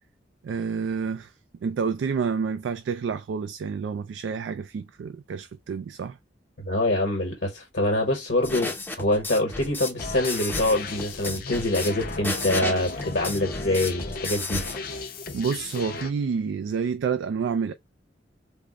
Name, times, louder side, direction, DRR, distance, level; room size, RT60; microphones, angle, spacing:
voice 1, 0.4-1.3 1.6-6.2 15.3-17.7, right 6 dB, 80° right, 0.3 m, -29 dB
voice 2, 6.6-14.6, left 1 dB, 70° left, 1.1 m, -25 dB
sound 1, 8.4-14.8, left 2 dB, 10° left, 0.5 m, -33 dB
sound 2, 10.0-16.1, left 3 dB, 55° left, 0.6 m, -36 dB
3.5 x 2.0 x 3.6 m
head